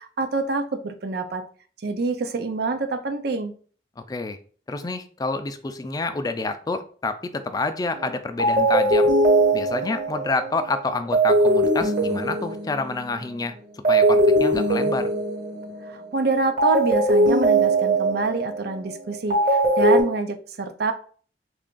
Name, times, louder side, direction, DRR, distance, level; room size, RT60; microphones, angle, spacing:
voice 1, 0.0-1.4 1.8-3.5 15.8-20.9, right 3 dB, 65° right, 8 dB, 0.5 m, -26 dB
voice 2, 4.0-4.4 4.7-9.1 9.5-13.5 13.9-15.1, left 3 dB, 20° left, 9 dB, 0.3 m, -28 dB
sound 1, 7.9-8.1 8.4-13.3 13.8-16.1 16.6-20.0, right 1 dB, 50° right, 1.3 m, -20 dB
3.3 x 2.5 x 3.7 m, 0.43 s
head